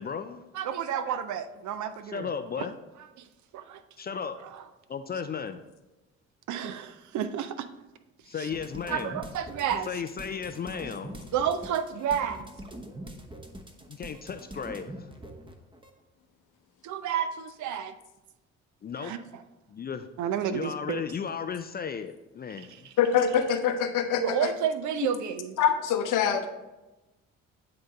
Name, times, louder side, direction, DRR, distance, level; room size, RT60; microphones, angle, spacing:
voice 1, 0.0-0.4 2.0-2.7 4.0-4.4 4.9-5.6 8.3-9.2 9.9-11.3 13.9-15.1 18.8-19.1 19.7-20.1 20.5-22.7, left 6 dB, 25° left, 9 dB, 0.4 m, -35 dB
voice 2, 0.5-2.3 3.5-3.8 4.5-4.6 6.5-7.7 8.4-8.5 8.9-9.9 11.3-12.5 16.8-17.9 19.0-19.2 20.2-21.0 22.6-22.9 24.2-25.6, right 8 dB, 55° right, 11 dB, 0.6 m, -30 dB
sound 1, 8.5-15.9, right 1 dB, 15° right, 1.0 m, -43 dB
voice 3, 23.0-24.5 25.6-26.5, left 8 dB, 60° left, 7 dB, 0.8 m, -24 dB
8.6 x 3.8 x 4.0 m, 1.0 s
figure-of-eight pair, 45°, 37 cm